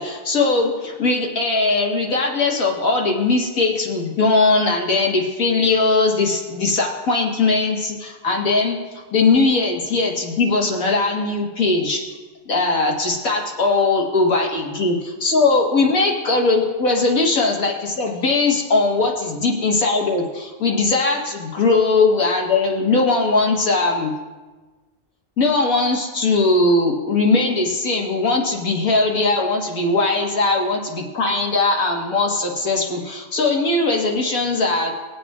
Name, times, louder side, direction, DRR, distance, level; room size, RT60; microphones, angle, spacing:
voice 1, 0.0-12.0 12.5-24.1 25.4-34.9, left 3 dB, 85° left, -1 dB, 2.1 m, -20 dB
20.5 x 8.4 x 2.4 m, 1.2 s
omnidirectional pair, 1.4 m